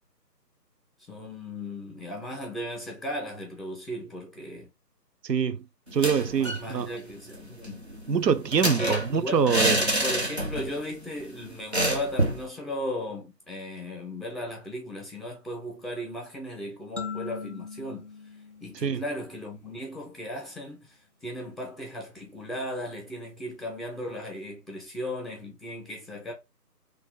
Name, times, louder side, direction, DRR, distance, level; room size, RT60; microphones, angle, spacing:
voice 1, 1.1-4.7 6.4-7.8 8.6-9.5 9.8-18.1 18.6-26.3, equal, ahead, 0.6 m, -36 dB
voice 2, 5.2-5.6 5.9-6.9 8.1-9.8 18.7-19.0, right 6 dB, 80° right, 0.7 m, -25 dB
sound 1, 5.9-6.7 7.0-7.1 7.3-10.8 11.1-11.2 11.7-12.5, right 1 dB, 40° right, 0.6 m, -27 dB
sound 2, 17.0-19.6, left 5 dB, 50° left, 0.4 m, -40 dB
3.1 x 2.6 x 3.8 m
figure-of-eight pair, 180°, 50 cm